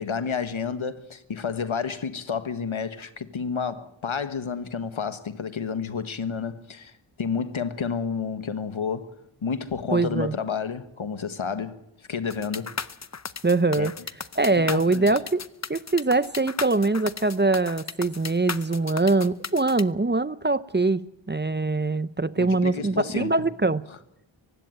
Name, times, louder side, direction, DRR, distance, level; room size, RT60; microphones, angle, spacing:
voice 1, 0.0-9.1 9.4-11.8 12.1-12.8 13.8-13.9 14.5-15.1 22.4-23.4 23.9-24.0, left 6 dB, 80° left, 1.4 m, -30 dB
voice 2, 9.9-10.3 13.4-13.9 14.4-15.4 15.7-21.0 21.3-23.8, right 3 dB, 25° right, 0.7 m, -23 dB
sound 1, 12.3-19.8, left 5 dB, 35° left, 0.7 m, -35 dB
19.0 x 16.0 x 9.1 m
wide cardioid pair, 45°, 47 cm